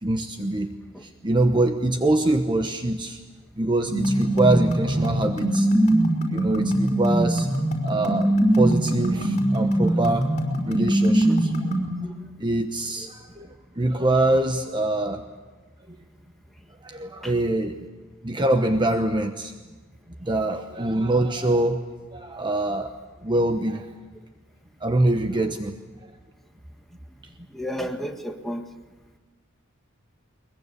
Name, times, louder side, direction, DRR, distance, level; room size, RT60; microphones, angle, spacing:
voice 1, 0.0-0.8 1.0-3.2 3.6-5.7 6.3-7.5 7.8-10.3 10.6-11.5 12.4-15.2 16.8-17.8 18.2-19.5 20.2-21.8 22.1-22.9 23.2-23.8 24.8-25.7, right 2 dB, 20° right, 6 dB, 1.0 m, -24 dB
sound 1, 3.9-11.9, right 1 dB, 35° left, 5.2 m, -22 dB
voice 2, 27.5-28.6, equal, ahead, 3 dB, 1.7 m, -32 dB
22.0 x 21.5 x 8.4 m, 1.3 s
head